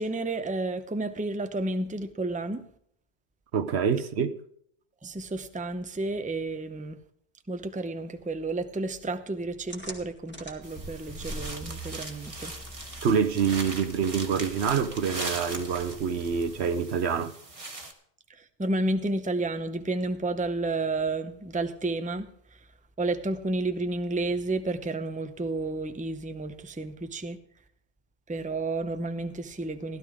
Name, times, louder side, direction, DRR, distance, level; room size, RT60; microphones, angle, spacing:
voice 1, 0.0-2.6 5.0-7.0 7.5-12.5 18.3-22.3 23.0-27.4 28.3-30.0, right 2 dB, 10° right, 0.6 m, -31 dB
voice 2, 3.5-4.4 13.0-17.3, right 6 dB, 80° right, 1.1 m, -26 dB
sound 1, 9.7-16.9, right 1 dB, 10° left, 1.8 m, -44 dB
sound 2, 10.6-17.9, right 2 dB, 30° right, 1.6 m, -40 dB
16.0 x 12.0 x 3.6 m
omnidirectional pair, 1.1 m